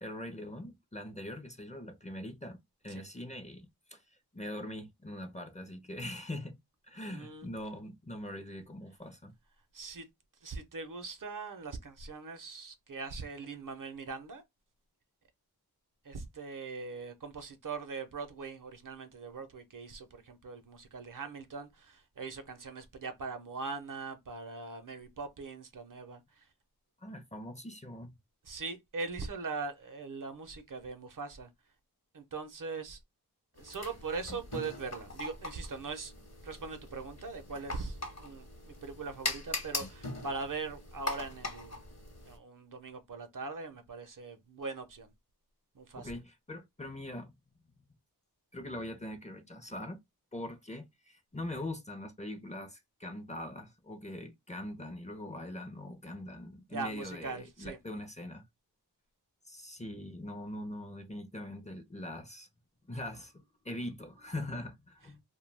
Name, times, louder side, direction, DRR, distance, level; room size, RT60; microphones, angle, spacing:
voice 1, 0.0-4.0 4.3-6.6 6.9-9.3 27.0-28.2 46.0-47.3 47.7-47.8 48.5-50.0 50.3-58.4 59.5-62.5 62.9-65.2, left 1 dB, 20° left, 0.6 m, -42 dB
voice 2, 7.1-7.5 9.7-10.1 10.4-14.4 16.0-26.5 28.4-31.5 32.1-33.0 33.6-36.1 36.4-41.8 42.3-45.1 45.7-46.1 56.7-57.8, right 4 dB, 55° right, 0.6 m, -41 dB
sound 1, 33.6-42.4, left 2 dB, 40° left, 0.9 m, -41 dB
2.2 x 2.2 x 3.2 m
wide cardioid pair, 45°, 39 cm